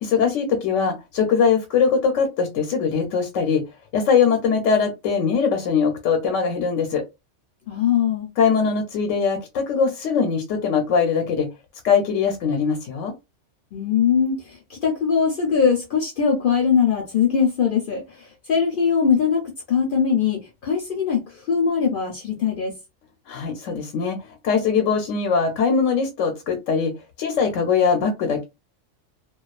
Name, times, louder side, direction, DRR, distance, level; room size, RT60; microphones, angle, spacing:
voice 1, 0.0-3.6 3.9-7.0 8.4-11.5 11.8-13.1 23.3-26.9 27.2-28.4, left 6 dB, 90° left, 0.9 m, -21 dB
voice 2, 7.7-8.3 13.7-18.0 18.5-19.4 19.7-22.7, left 6 dB, 55° left, 0.6 m, -21 dB
2.3 x 2.3 x 2.3 m
omnidirectional pair, 1.3 m